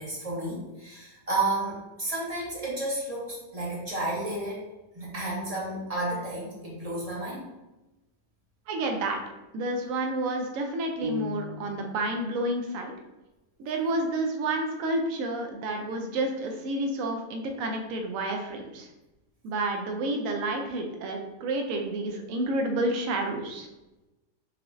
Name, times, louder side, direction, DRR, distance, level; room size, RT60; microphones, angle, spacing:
voice 1, 0.0-4.6 4.9-7.5, right 2 dB, 30° right, -5 dB, 0.8 m, -32 dB
voice 2, 8.7-9.2 9.5-12.9 13.6-18.9 19.4-23.7, right 2 dB, 65° right, 3 dB, 0.9 m, -30 dB
sound 1, 11.0-12.0, left 2 dB, 90° right, 1.2 m, -35 dB
4.7 x 3.0 x 2.5 m, 1.0 s
omnidirectional pair, 1.8 m